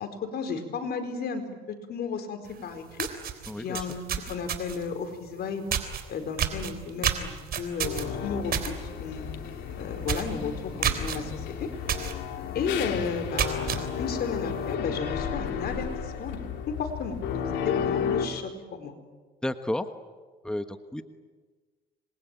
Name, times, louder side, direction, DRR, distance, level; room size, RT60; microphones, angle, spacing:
voice 1, 0.0-3.1 3.5-4.0 4.3-5.7 6.1-8.7 9.0-9.3 9.8-11.7 12.5-18.9, left 5 dB, 65° left, 6 dB, 4.6 m, -33 dB
sound 1, 2.5-2.6 2.9-4.9 5.7-6.0 6.4-8.7 9.1-9.3 9.6-9.7 10.0-10.3 10.8-11.2 11.9-12.1 12.6-12.7 13.2-13.8, right 9 dB, 60° right, 3.6 m, -29 dB
voice 2, 3.5-3.9 19.4-19.9 20.4-21.0, left 1 dB, 5° left, 8 dB, 1.3 m, -31 dB
sound 2, 7.8-18.3, left 7 dB, 85° left, 2.8 m, -33 dB
27.0 x 22.0 x 9.2 m, 1.4 s
cardioid pair, 100°, 18 cm